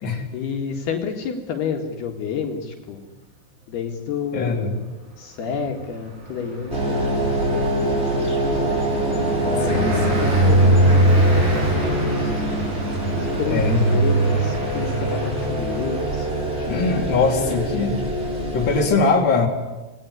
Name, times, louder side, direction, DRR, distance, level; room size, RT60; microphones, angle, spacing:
voice 1, 0.3-3.0 3.7-4.8 5.2-8.6 9.2-11.7 12.0-12.4 13.1-17.6, left 6 dB, 65° left, 1 dB, 3.9 m, -30 dB
voice 2, 4.3-4.8 9.7-10.2 13.5-14.0 16.7-18.0 18.5-19.5, left 4 dB, 25° left, 0 dB, 3.7 m, -21 dB
Car passing by, 5.5-16.6, right 1 dB, 65° right, 10.0 m, -22 dB
sound 1, 6.7-18.9, right 1 dB, 15° right, 6.0 m, -25 dB
27.0 x 20.5 x 9.9 m, 1.1 s
omnidirectional pair, 5.1 m